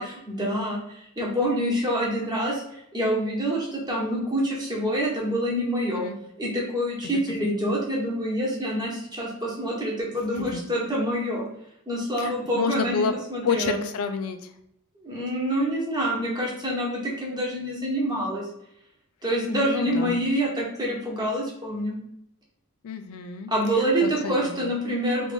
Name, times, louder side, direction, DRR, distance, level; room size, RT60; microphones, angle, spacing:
voice 1, 0.0-2.6 2.9-6.0 6.4-11.4 11.9-13.0 13.3-13.8 15.0-18.4 19.2-22.0 23.5-25.3, equal, 20° right, -4 dB, 1.2 m, -26 dB
voice 2, 5.9-6.2 7.1-7.2 10.4-10.6 12.2-13.1 13.4-14.5 19.6-20.2 22.8-24.7, left 5 dB, 65° left, 8 dB, 0.4 m, -30 dB
3.2 x 2.5 x 3.5 m, 0.75 s
head